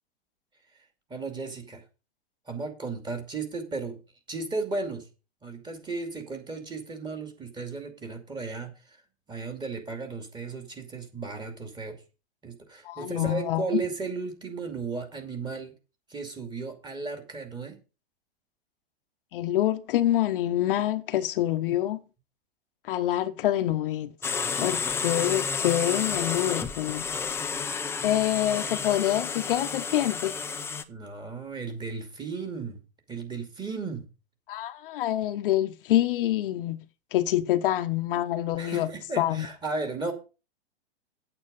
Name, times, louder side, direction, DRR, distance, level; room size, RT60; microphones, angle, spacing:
voice 1, 1.1-1.8 2.5-4.0 4.3-5.1 5.4-9.0 9.3-12.0 12.4-15.7 16.1-17.8 30.9-32.8 33.1-34.0 38.6-40.1, right 4 dB, 15° right, 2.5 m, -35 dB
voice 2, 12.8-13.8 19.3-22.0 22.8-24.1 24.6-27.1 28.0-30.3 34.5-36.8 37.1-38.9 39.2-39.5, left 13 dB, 55° left, 0.9 m, -26 dB
sound 1, 24.2-30.8, left 5 dB, 10° left, 0.6 m, -31 dB
8.8 x 8.8 x 5.3 m
hypercardioid pair, 135°, 32 cm